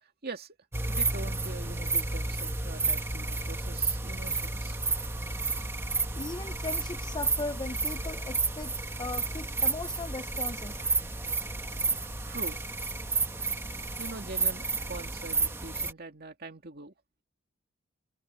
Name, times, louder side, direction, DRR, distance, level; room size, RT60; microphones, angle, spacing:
voice 1, 0.0-0.6 0.9-4.8 12.3-12.6 14.0-16.9, right 3 dB, 50° right, 2.3 m, -43 dB
sound 1, 0.7-15.9, right 3 dB, 10° right, 1.3 m, -31 dB
voice 2, 6.2-10.9, left 3 dB, 20° left, 0.5 m, -38 dB
head